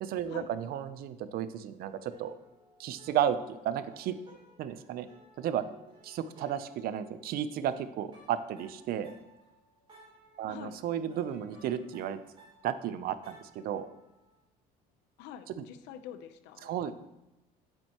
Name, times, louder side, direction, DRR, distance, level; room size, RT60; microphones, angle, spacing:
voice 1, 0.0-2.3 2.8-4.2 4.6-5.1 5.4-5.6 6.0-9.1 10.4-12.2 12.6-13.9 15.6-15.7 16.6-16.9, right 10 dB, 60° right, 13 dB, 0.6 m, -33 dB
sound 1, 1.9-7.8 8.1-14.4, right 1 dB, 30° right, 3.1 m, -59 dB
voice 2, 10.5-10.8 15.2-16.9, left 9 dB, 80° left, 11 dB, 0.7 m, -46 dB
8.8 x 7.8 x 3.0 m, 0.93 s
cardioid pair, 115°, 17 cm